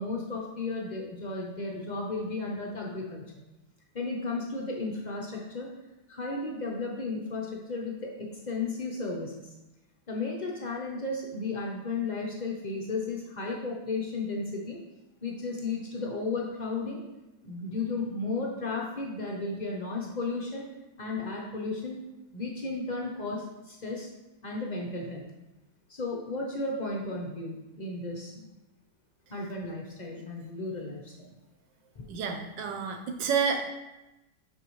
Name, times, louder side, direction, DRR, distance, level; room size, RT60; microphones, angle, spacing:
voice 1, 0.0-3.2 3.9-5.7 6.1-9.3 10.1-14.8 15.2-17.0 17.4-20.7 21.0-22.0 22.3-24.1 24.4-25.2 25.9-28.4 29.3-31.3 32.0-32.1, left 3 dB, 90° left, -1 dB, 0.4 m, -34 dB
voice 2, 32.1-33.7, right 6 dB, 80° right, 3 dB, 1.3 m, -29 dB
8.7 x 4.5 x 3.1 m, 1.0 s
omnidirectional pair, 1.9 m